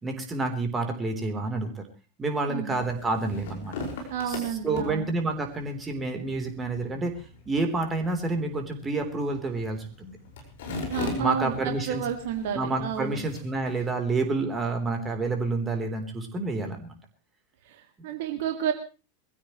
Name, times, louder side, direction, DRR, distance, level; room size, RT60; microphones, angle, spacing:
voice 1, 0.0-1.8 2.2-3.7 4.3-4.4 4.6-7.1 7.5-10.1 11.2-12.0 12.5-16.9 18.0-18.1, right 3 dB, 15° right, 4 dB, 3.7 m, -29 dB
voice 2, 2.5-2.8 4.1-5.1 10.9-13.2 17.7-18.7, right 8 dB, 50° right, 5 dB, 2.0 m, -31 dB
sound 1, 2.7-13.9, left 3 dB, 55° left, 5.2 m, -40 dB
22.5 x 15.5 x 3.2 m, 0.33 s
figure-of-eight pair, 90°, 0 cm